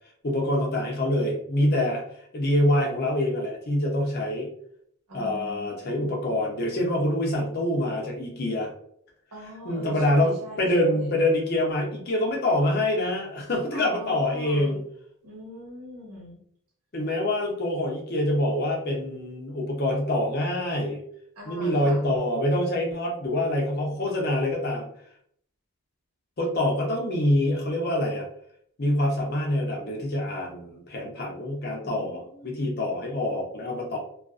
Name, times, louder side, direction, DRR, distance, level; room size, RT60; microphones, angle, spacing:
voice 1, 0.2-2.0 2.3-4.5 5.1-8.7 9.6-14.8 16.9-21.0 21.5-24.9 26.4-28.3 28.8-34.0, left 1 dB, 45° left, -1 dB, 0.6 m, -25 dB
voice 2, 5.1-6.2 9.3-11.1 13.7-14.8 15.2-16.4 21.4-22.0 31.8-32.6, equal, 90° right, -3 dB, 1.0 m, -42 dB
2.4 x 2.4 x 2.4 m, 0.66 s
head